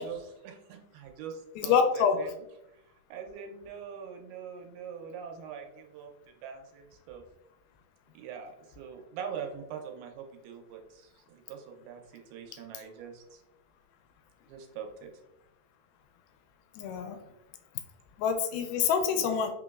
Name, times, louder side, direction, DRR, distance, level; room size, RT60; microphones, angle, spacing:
voice 1, 0.0-2.3 2.7-2.8 3.1-7.2 8.1-13.4 14.5-15.1, right 7 dB, 85° right, 3 dB, 2.6 m, -43 dB
voice 2, 1.6-2.2 16.8-17.2 18.2-19.5, left 6 dB, 85° left, 5 dB, 2.4 m, -26 dB
5.6 x 2.9 x 2.3 m, 0.86 s
omnidirectional pair, 4.3 m